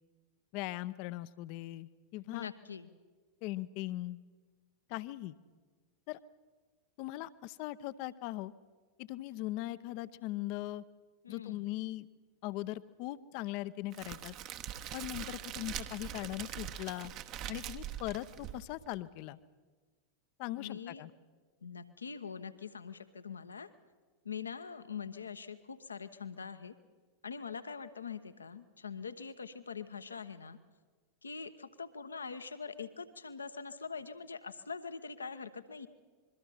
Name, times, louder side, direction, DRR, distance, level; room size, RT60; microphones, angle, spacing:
voice 1, 0.5-2.5 3.4-4.2 4.9-5.3 6.1-6.2 7.0-8.5 9.0-10.8 11.3-12.1 12.4-14.3 14.9-17.1 17.5-19.4 20.4-21.1, left 16 dB, 45° left, 16 dB, 0.8 m, -40 dB
voice 2, 2.3-2.9 11.2-11.7 20.5-21.1 21.6-23.7 24.2-26.7 27.2-30.6 31.2-35.9, left 6 dB, 75° left, 11 dB, 1.1 m, -43 dB
Crackle, 13.9-19.0, right 10 dB, 40° right, 1.1 m, -43 dB
26.5 x 22.5 x 5.7 m, 1.4 s
figure-of-eight pair, 90°, 0 cm